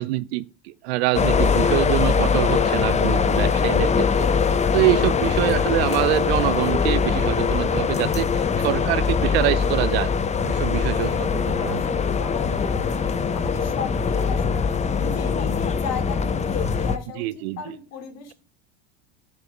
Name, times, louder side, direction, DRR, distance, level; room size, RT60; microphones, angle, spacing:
voice 1, 0.0-4.3 4.7-8.3 8.6-10.1 10.5-11.1 11.5-11.8 17.2-17.6, right 18 dB, 80° right, 0.6 m, -25 dB
sound 1, 1.1-17.0, left 5 dB, 20° left, 0.8 m, -22 dB
voice 2, 8.1-8.6 10.9-18.3, left 7 dB, 55° left, 3.0 m, -36 dB
7.0 x 7.0 x 5.0 m
supercardioid pair, 105°, 32 cm